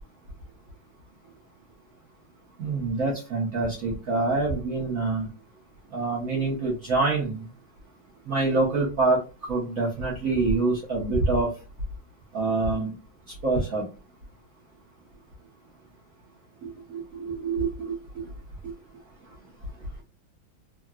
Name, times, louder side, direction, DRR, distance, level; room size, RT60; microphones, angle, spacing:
voice 1, 2.6-5.3 5.9-7.4 8.3-9.2 9.5-11.5 12.3-12.9 13.4-13.8 16.6-17.7, right 3 dB, 55° right, -5 dB, 1.0 m, -25 dB
3.6 x 2.1 x 2.3 m, 0.32 s
omnidirectional pair, 2.2 m